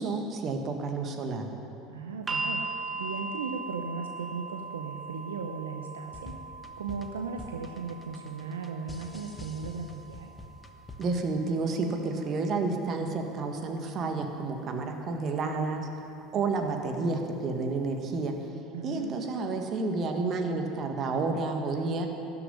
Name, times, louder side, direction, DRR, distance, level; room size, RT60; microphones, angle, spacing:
voice 1, 0.0-1.5 11.0-15.9 16.3-18.4 18.8-22.1, right 3 dB, 45° right, 4 dB, 1.7 m, -30 dB
voice 2, 1.9-2.6 3.0-6.3 6.8-10.3 18.7-19.2, right 5 dB, 85° right, 3 dB, 0.8 m, -37 dB
sound 1, 2.3-14.4 15.4-15.5, right 3 dB, 25° right, 1.4 m, -40 dB
sound 2, 6.1-11.3, left 2 dB, 20° left, 1.2 m, -46 dB
13.0 x 7.0 x 9.9 m, 2.7 s
hypercardioid pair, 75°, 0 cm